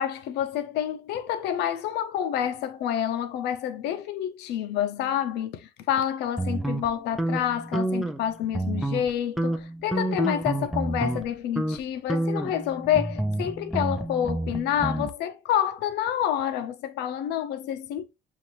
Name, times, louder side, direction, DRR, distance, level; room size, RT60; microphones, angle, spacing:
voice 1, 0.0-18.1, left 10 dB, 85° left, 0.6 m, -28 dB
sound 1, 6.4-8.2 8.5-9.1 9.4-11.3 11.6-11.8 12.1-15.1, right 1 dB, ahead, 0.4 m, -29 dB
5.7 x 2.5 x 2.9 m
cardioid pair, 110°, 17 cm